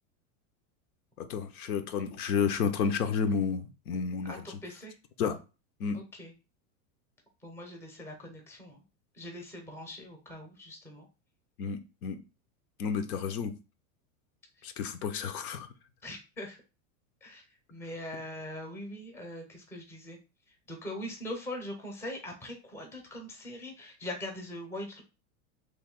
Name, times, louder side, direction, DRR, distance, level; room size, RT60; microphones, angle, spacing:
voice 1, 1.2-4.3 5.2-5.4 5.8-6.0 11.6-12.2 12.8-13.5 14.6-15.7, left 6 dB, 85° left, 8 dB, 0.7 m, -31 dB
voice 2, 4.2-4.9 5.9-6.3 7.4-8.8 9.1-11.1 16.0-16.6 17.2-20.2 20.7-25.0, left 1 dB, 5° left, 2 dB, 0.6 m, -42 dB
3.2 x 2.6 x 3.6 m, 0.31 s
supercardioid pair, 140°, 42 cm